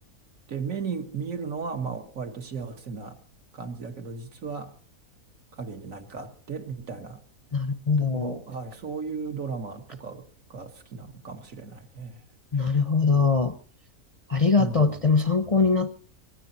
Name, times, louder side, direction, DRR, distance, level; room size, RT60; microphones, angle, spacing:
voice 1, 0.5-3.2 3.5-4.7 5.6-7.2 8.0-10.2 10.5-12.2 14.6-14.9, right 5 dB, 65° right, 2.0 m, -35 dB
voice 2, 7.5-8.4 12.5-13.6 14.3-16.0, left 4 dB, 30° left, 0.7 m, -22 dB
24.0 x 18.0 x 2.8 m
omnidirectional pair, 1.5 m